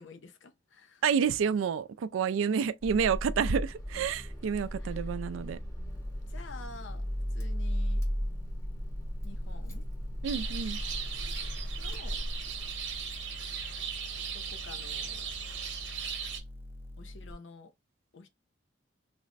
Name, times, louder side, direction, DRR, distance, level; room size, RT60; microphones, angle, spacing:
voice 1, 0.0-1.0 4.8-5.0 6.3-7.1 7.3-8.0 9.2-9.8 11.8-12.2 14.3-15.3 17.0-17.7 18.1-18.3, left 3 dB, 75° left, 0.7 m, -49 dB
voice 2, 1.0-5.6 10.2-10.8, right 7 dB, 85° right, 0.3 m, -29 dB
Car / Engine starting, 2.8-12.9, equal, 15° left, 0.8 m, -36 dB
sound 1, 5.9-17.3, left 1 dB, 10° right, 0.4 m, -46 dB
sound 2, 10.2-16.4, right 7 dB, 70° right, 0.9 m, -38 dB
3.2 x 2.0 x 3.9 m
head